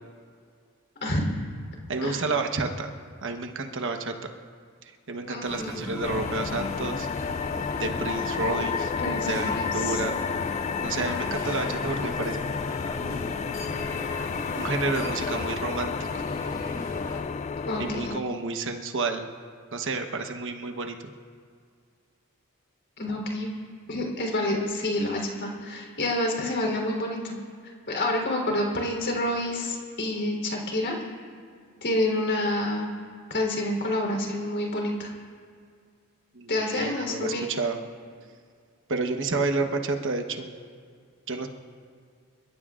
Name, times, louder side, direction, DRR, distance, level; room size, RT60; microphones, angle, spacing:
voice 1, 1.9-2.9 3.2-4.3 5.1-7.1 7.8-8.9 9.3-10.2 10.8-12.5 12.9-13.5 14.5-16.2 17.8-19.3 19.7-21.1 36.3-37.8 38.9-40.5 41.3-41.5, right 3 dB, 60° right, 4 dB, 1.1 m, -30 dB
voice 2, 5.3-5.9 9.0-10.0 17.7-18.2 23.0-23.5 23.9-27.4 27.6-31.0 31.8-32.9 33.3-35.1 36.5-37.5, left 1 dB, 55° left, 0 dB, 3.7 m, -28 dB
sound 1, 5.4-17.2, left 1 dB, 15° left, 2.0 m, -38 dB
sound 2, 6.0-18.2, left 6 dB, 30° left, 0.3 m, -31 dB
29.5 x 15.0 x 2.5 m, 2.2 s
head